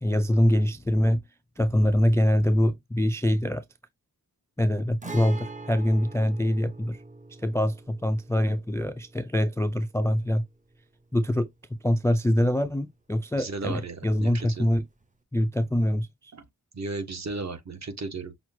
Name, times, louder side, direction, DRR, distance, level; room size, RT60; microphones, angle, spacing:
voice 1, 0.0-1.2 1.6-3.6 4.6-7.0 7.4-10.4 11.1-11.5 11.8-14.8 15.3-16.3, left 1 dB, 10° left, 0.3 m, -24 dB
Guitar, 5.0-12.6 12.9-13.0 15.0-15.1, right 3 dB, 20° right, 0.7 m, -44 dB
voice 2, 13.4-14.7 16.3-16.4 16.7-18.3, right 3 dB, 45° right, 1.3 m, -35 dB
5.9 x 2.3 x 2.7 m
wide cardioid pair, 125°, 37 cm